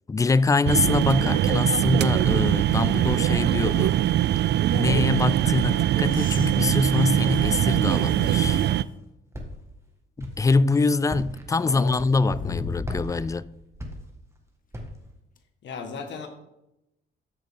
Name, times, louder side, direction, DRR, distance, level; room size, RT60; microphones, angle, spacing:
voice 1, 0.1-4.0 4.7-8.6 10.2-13.5, left 3 dB, 15° left, 0.3 m, -24 dB
sound 1, 0.7-8.8, right 12 dB, 60° right, 0.4 m, -22 dB
sound 2, 6.1-8.8 9.5-9.6 12.3-13.5 15.4-15.5, left 4 dB, 45° left, 1.0 m, -38 dB
Walk footsteps, 6.6-7.0 7.5-8.1 8.4-8.9 9.3-9.8 10.2-10.5 11.0-11.5 11.9-12.5 12.8-14.4 14.7-15.1, equal, 15° right, 1.9 m, -37 dB
voice 2, 11.6-11.9 15.6-16.3, left 5 dB, 65° left, 1.8 m, -36 dB
13.0 x 6.6 x 3.8 m
cardioid pair, 90°, 20 cm